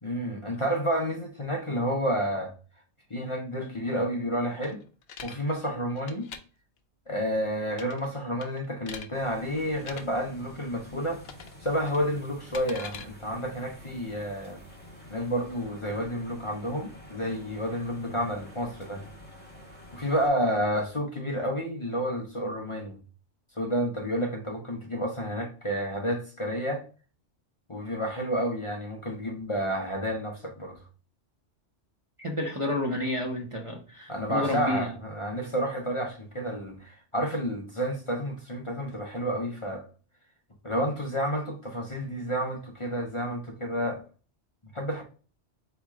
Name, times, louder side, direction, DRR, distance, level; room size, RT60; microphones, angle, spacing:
voice 1, 0.0-2.5 3.1-4.8 5.2-6.3 7.1-11.2 11.6-14.6 15.1-19.1 19.9-23.0 23.5-26.8 27.7-30.8 34.1-39.8 40.6-44.0 44.7-45.0, equal, 30° left, 0.8 m, -30 dB
sound 1, 4.6-5.4 6.0-6.4 7.7-8.1 8.4-9.1 9.8-10.0 11.2-11.6 11.9-13.1, left 6 dB, 65° left, 0.9 m, -42 dB
sound 2, 9.1-20.3, left 1 dB, 10° left, 1.8 m, -48 dB
voice 2, 32.2-34.9, left 1 dB, 30° right, 0.8 m, -30 dB
4.3 x 3.3 x 3.6 m
omnidirectional pair, 1.2 m